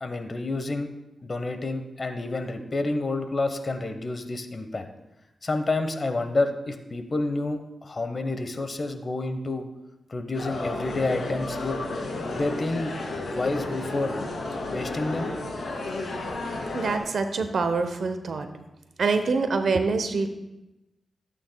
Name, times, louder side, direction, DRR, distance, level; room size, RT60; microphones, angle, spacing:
voice 1, 0.0-0.9 1.2-4.8 5.4-9.7 10.1-11.8 12.3-12.9 13.3-14.2 14.7-15.3, left 2 dB, 45° left, 7 dB, 1.2 m, -29 dB
sound 1, 10.3-17.0, left 2 dB, 65° left, 2.5 m, -32 dB
voice 2, 16.7-18.5 19.0-20.3, right 4 dB, 70° right, 8 dB, 0.9 m, -25 dB
15.0 x 8.6 x 2.3 m, 0.97 s
cardioid pair, 60°, 0 cm